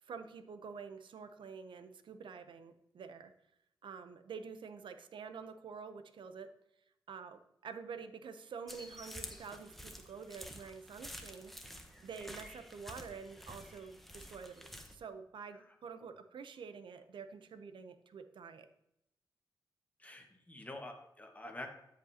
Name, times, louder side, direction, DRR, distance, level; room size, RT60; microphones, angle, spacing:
voice 1, 0.0-3.3 3.8-6.5 7.1-11.5 12.0-18.7, right 5 dB, 80° right, 9 dB, 0.7 m, -48 dB
sound 1, 8.7-14.9, equal, ahead, 1.0 m, -50 dB
voice 2, 20.0-21.7, left 1 dB, 20° left, 3 dB, 1.5 m, -47 dB
13.0 x 5.2 x 2.8 m, 0.81 s
cardioid pair, 75°, 8 cm